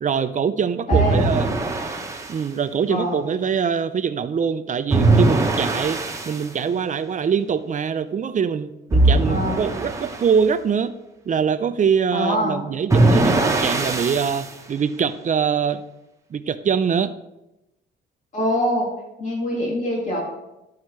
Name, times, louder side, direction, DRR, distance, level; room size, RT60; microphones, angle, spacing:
voice 1, 0.0-1.5 2.3-11.0 11.3-15.8 16.3-17.1, right 7 dB, 40° right, 11 dB, 0.5 m, -23 dB
voice 2, 0.9-1.2 2.9-3.2 9.3-9.6 12.1-12.6 18.3-18.9 19.2-20.2, equal, 40° left, -3 dB, 2.8 m, -24 dB
sound 1, 0.9-2.3 4.9-6.4 8.9-10.3 12.9-14.5, right 2 dB, 15° right, 1.0 m, -20 dB
13.0 x 4.7 x 3.2 m, 0.92 s
cardioid pair, 90°, 20 cm